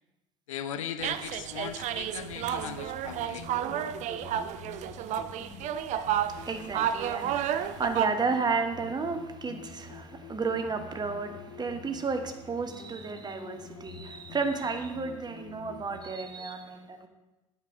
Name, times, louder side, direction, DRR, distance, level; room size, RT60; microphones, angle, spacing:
voice 1, 0.5-3.5, left 9 dB, 75° left, 10 dB, 0.5 m, -38 dB
sound 1, 1.0-8.1, right 10 dB, 45° right, 0.5 m, -31 dB
sound 2, 2.3-16.0, left 5 dB, 50° left, 1.4 m, -48 dB
voice 2, 6.2-17.1, right 4 dB, 25° right, 6 dB, 1.1 m, -32 dB
8.6 x 7.0 x 3.7 m, 1.0 s
figure-of-eight pair, 65°, 17 cm